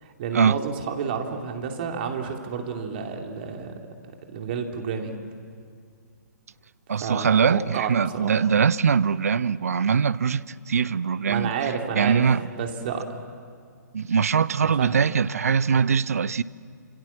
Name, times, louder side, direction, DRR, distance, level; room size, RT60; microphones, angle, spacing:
voice 1, 0.0-3.8 4.3-5.2 7.0-8.4 11.3-12.3 12.5-13.1 14.6-15.0, right 6 dB, 35° right, 2.9 m, -30 dB
voice 2, 6.9-11.5 12.0-12.4 13.9-16.4, right 6 dB, 55° right, 0.7 m, -22 dB
28.0 x 27.0 x 7.4 m
figure-of-eight pair, 130°, 10 cm